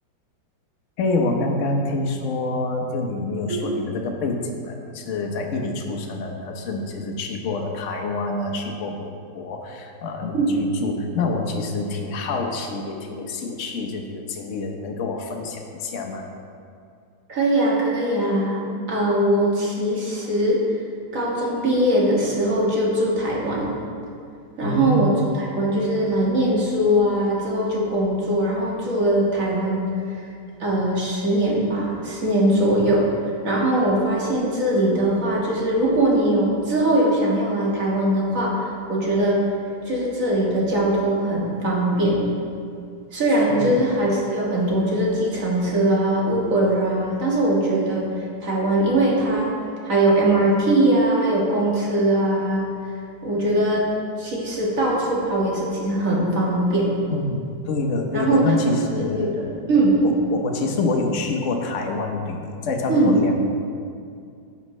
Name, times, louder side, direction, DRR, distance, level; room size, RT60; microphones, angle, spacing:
voice 1, 1.0-16.2 24.6-25.3 43.5-43.8 57.1-59.3 60.0-63.4, left 3 dB, 50° left, 2 dB, 1.0 m, -27 dB
voice 2, 17.3-18.6 18.9-20.6 21.1-23.7 24.6-30.2 30.6-33.1 33.4-39.4 39.9-42.2 43.1-48.1 48.4-49.5 49.8-52.7 53.2-53.9 54.2-56.9 58.1-58.5 59.0-60.0 62.9-63.2, right 1 dB, 45° right, -4 dB, 2.0 m, -21 dB
11.0 x 7.2 x 3.2 m, 2.3 s
omnidirectional pair, 2.1 m